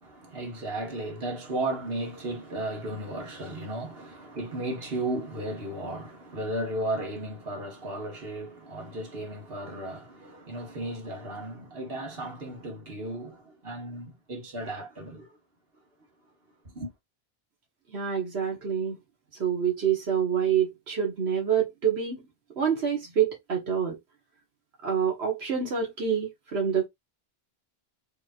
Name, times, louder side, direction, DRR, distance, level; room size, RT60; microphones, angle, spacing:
voice 1, 0.0-15.3 16.7-16.9, right 1 dB, 65° right, 1.8 m, -35 dB
voice 2, 17.9-19.0 19.4-22.2 22.6-24.0 24.8-26.9, right 8 dB, 85° right, 1.6 m, -27 dB
5.4 x 3.1 x 2.4 m
omnidirectional pair, 1.0 m